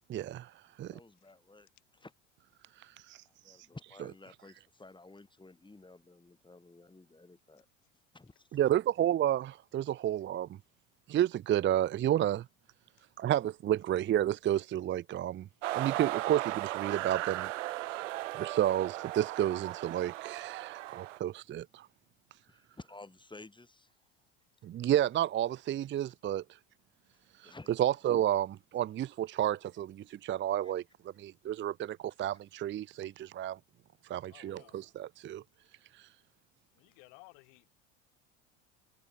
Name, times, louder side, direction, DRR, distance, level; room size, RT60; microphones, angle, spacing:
voice 1, 0.1-1.0 2.8-3.6 8.5-10.5 11.1-12.5 13.2-15.5 15.7-17.5 18.0-21.9 24.6-26.4 27.4-27.5 27.8-30.8 31.2-33.6 34.0-35.4 35.9-36.1, right 12 dB, 30° right, 0.6 m, -31 dB
voice 2, 0.8-1.7 1.9-2.1 3.3-7.7 8.1-8.6 22.5-24.1 27.4-27.7 30.6-30.7, left 2 dB, 15° left, 7.3 m, -53 dB
sound 1, 15.6-21.2, right 16 dB, 80° right, 1.8 m, -36 dB
voice 3, 34.3-34.8 36.7-37.7, left 37 dB, 65° left, 7.7 m, -57 dB
hypercardioid pair, 80°, 37 cm